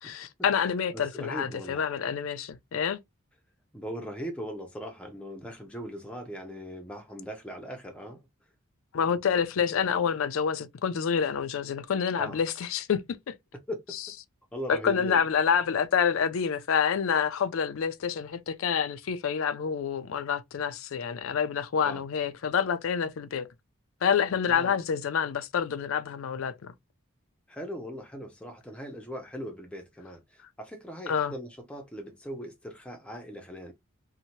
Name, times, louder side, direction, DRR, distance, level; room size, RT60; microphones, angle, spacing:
voice 1, 0.0-3.0 8.9-13.0 13.3-13.4 14.7-23.5 24.0-26.7 31.1-31.3, left 7 dB, 70° left, 0.4 m, -27 dB
voice 2, 0.9-1.8 3.7-8.2 12.2-12.4 13.7-13.8 14.5-15.2 21.8-22.0 24.4-24.8 27.5-33.7, equal, 5° left, 0.5 m, -39 dB
2.7 x 2.1 x 2.9 m
head